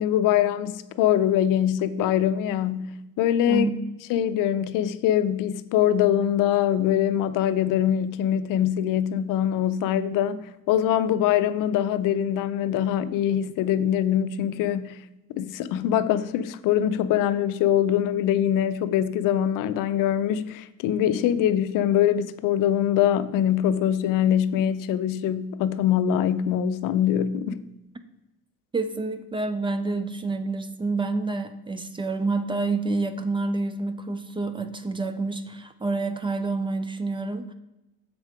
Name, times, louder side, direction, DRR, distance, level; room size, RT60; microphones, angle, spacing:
voice 1, 0.0-3.7 4.1-15.0 15.3-27.7, left 10 dB, 75° left, 0.6 m, -23 dB
voice 2, 28.7-37.5, right 3 dB, 15° right, 0.4 m, -28 dB
7.5 x 5.1 x 4.8 m
cardioid pair, 150°, 32 cm